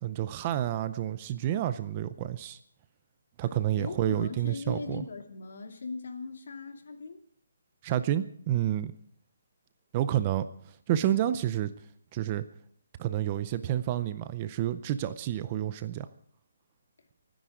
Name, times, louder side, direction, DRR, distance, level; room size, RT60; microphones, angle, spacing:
voice 1, 0.0-2.6 3.4-5.1 7.8-8.9 9.9-10.5 10.9-11.7 12.1-12.4 13.0-16.1, right 12 dB, 20° right, 12 dB, 0.5 m, -29 dB
voice 2, 3.8-7.2 10.1-10.4 17.0-17.1, left 4 dB, 60° left, 4 dB, 2.7 m, -39 dB
24.0 x 10.0 x 5.0 m, 0.64 s
hypercardioid pair, 175°, 0 cm